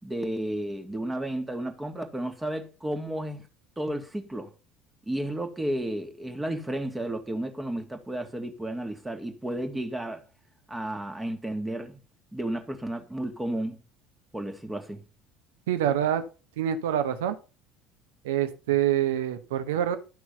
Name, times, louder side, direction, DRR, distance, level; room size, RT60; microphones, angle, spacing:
voice 1, 0.0-3.4 3.8-4.5 5.1-10.2 10.7-12.0 12.3-13.8 14.3-15.0, right 1 dB, 10° right, 1.8 m, -32 dB
voice 2, 15.7-16.2 16.6-17.4 18.2-20.0, right 10 dB, 65° right, 1.3 m, -26 dB
12.0 x 6.0 x 5.6 m
figure-of-eight pair, 65°, 0 cm